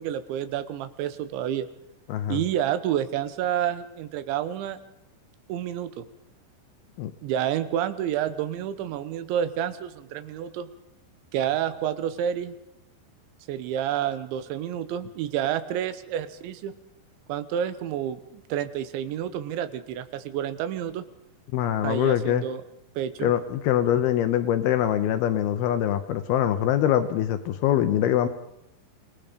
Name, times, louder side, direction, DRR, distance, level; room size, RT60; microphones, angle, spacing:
voice 1, 0.0-1.7 2.3-4.8 5.5-6.1 7.2-10.7 11.3-12.6 13.5-16.7 17.3-21.0 21.8-22.6 23.0-23.3, right 10 dB, 90° right, 12 dB, 3.5 m, -29 dB
voice 2, 2.1-2.4 7.0-7.1 21.5-22.4 23.2-28.3, left 11 dB, 75° left, 10 dB, 2.5 m, -23 dB
27.0 x 19.0 x 5.2 m, 0.81 s
omnidirectional pair, 5.1 m